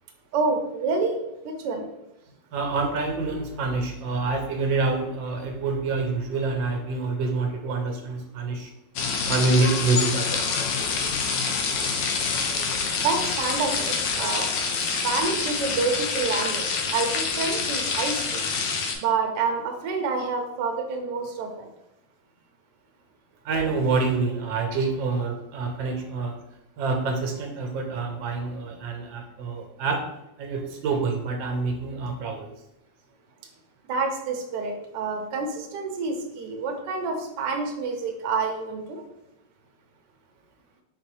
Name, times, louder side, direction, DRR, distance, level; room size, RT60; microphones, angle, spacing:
voice 1, 0.3-1.2 1.4-1.9 13.0-18.5 19.0-21.7 33.9-39.0, right 4 dB, 70° right, 3 dB, 1.3 m, -28 dB
voice 2, 2.5-8.7 9.3-10.4 23.4-26.3 26.8-30.0 30.4-32.5, right 3 dB, 90° right, 2 dB, 1.5 m, -26 dB
sound 1, 9.0-19.0, left 5 dB, 80° left, 1.3 m, -27 dB
4.2 x 3.8 x 3.1 m, 0.87 s
omnidirectional pair, 2.0 m